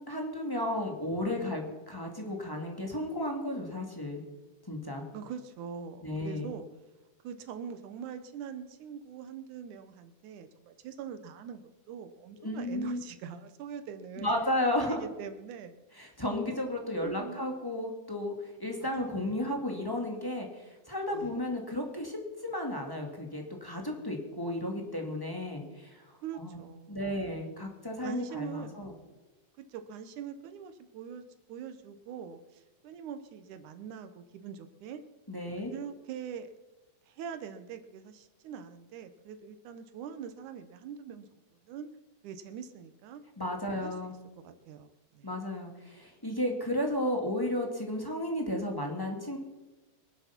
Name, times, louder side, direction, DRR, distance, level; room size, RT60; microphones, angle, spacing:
voice 1, 0.1-4.2 4.7-5.0 6.0-6.5 12.4-13.0 14.2-15.0 16.0-26.6 26.9-28.9 35.3-35.7 43.4-44.1 45.2-49.4, left 1 dB, 10° left, 1 dB, 1.8 m, -33 dB
voice 2, 5.1-6.7 7.2-11.6 11.9-14.3 14.8-15.8 16.5-16.6 17.0-17.5 18.8-18.9 21.1-21.4 26.2-27.2 28.0-29.1 29.6-31.2 31.5-35.0 35.7-36.5 37.1-41.3 41.6-41.9 42.2-43.2 43.7-45.3, right 7 dB, 85° right, 9 dB, 2.5 m, -43 dB
24.0 x 8.0 x 5.9 m, 1.1 s
omnidirectional pair, 3.4 m